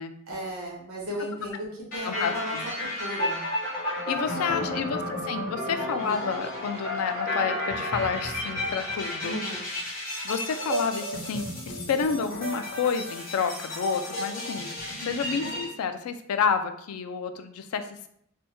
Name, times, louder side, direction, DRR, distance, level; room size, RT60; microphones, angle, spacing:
voice 1, 0.3-1.7 1.9-2.5 3.0-3.4 4.1-5.2 9.2-9.7, equal, 75° right, -3 dB, 1.1 m, -36 dB
sound 1, 1.9-15.6, left 1 dB, 40° left, 1.1 m, -32 dB
voice 2, 2.0-2.6 3.9-9.3 10.2-18.1, left 6 dB, 85° left, 8 dB, 0.3 m, -30 dB
3.3 x 2.1 x 2.9 m, 0.69 s
head